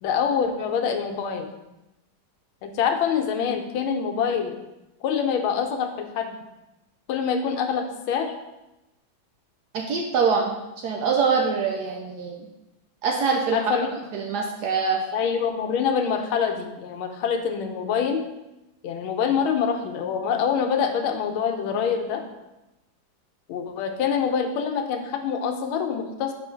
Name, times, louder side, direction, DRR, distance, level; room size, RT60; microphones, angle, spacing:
voice 1, 0.0-1.5 2.6-4.5 5.0-6.3 7.1-8.3 13.5-13.9 15.1-18.2 18.8-22.2 23.5-26.3, left 7 dB, 85° left, 5 dB, 1.5 m, -25 dB
voice 2, 9.7-10.5 10.8-12.4 13.0-13.7 14.1-15.0, right 5 dB, 70° right, 1 dB, 1.0 m, -24 dB
4.4 x 3.8 x 5.5 m, 0.96 s
omnidirectional pair, 2.2 m